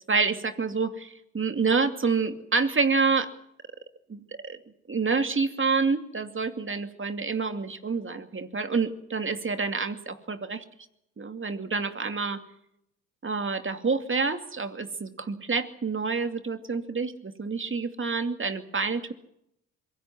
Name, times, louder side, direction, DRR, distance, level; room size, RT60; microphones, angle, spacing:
voice 1, 0.1-3.3 4.1-4.6 4.9-10.6 11.2-12.4 13.2-19.1, right 4 dB, 30° right, 8 dB, 2.6 m, -28 dB
25.0 x 23.0 x 6.1 m, 0.78 s
hypercardioid pair, 55°, 42 cm